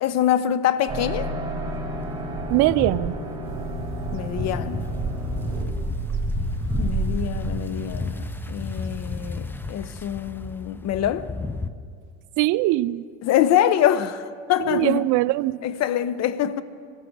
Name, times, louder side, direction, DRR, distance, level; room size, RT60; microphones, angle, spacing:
voice 1, 0.0-1.3 4.1-4.9 6.8-11.3 13.2-15.1 15.6-16.6, left 10 dB, 45° left, 1.0 m, -24 dB
sound 1, 0.9-7.6, right 2 dB, 10° right, 5.2 m, -31 dB
sound 2, 2.0-11.7, left 3 dB, 5° left, 0.6 m, -32 dB
voice 2, 2.5-3.2 12.4-13.0 14.6-15.6, right 18 dB, 50° right, 0.5 m, -21 dB
sound 3, 3.4-9.4, right 8 dB, 35° right, 2.0 m, -36 dB
23.0 x 16.0 x 3.9 m
supercardioid pair, 105°, 38 cm